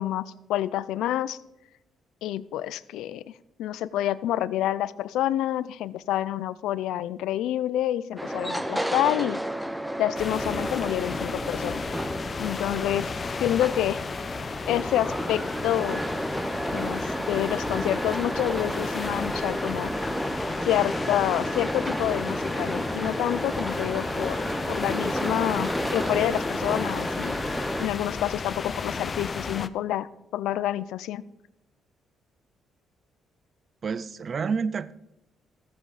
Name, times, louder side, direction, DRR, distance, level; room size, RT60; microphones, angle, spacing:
voice 1, 0.0-1.4 2.2-3.3 3.6-9.4 10.0-11.8 12.4-13.1 13.4-14.0 14.7-16.0 16.7-19.9 20.6-27.4 27.8-31.2, left 12 dB, 90° left, 17 dB, 0.4 m, -28 dB
sound 1, 8.2-27.9, equal, 5° right, 0.7 m, -31 dB
sound 2, 10.2-29.7, left 5 dB, 35° left, 0.5 m, -34 dB
voice 2, 33.8-34.9, right 5 dB, 45° right, 18 dB, 0.5 m, -29 dB
14.5 x 7.5 x 4.9 m, 0.89 s
cardioid pair, 90°, 0 cm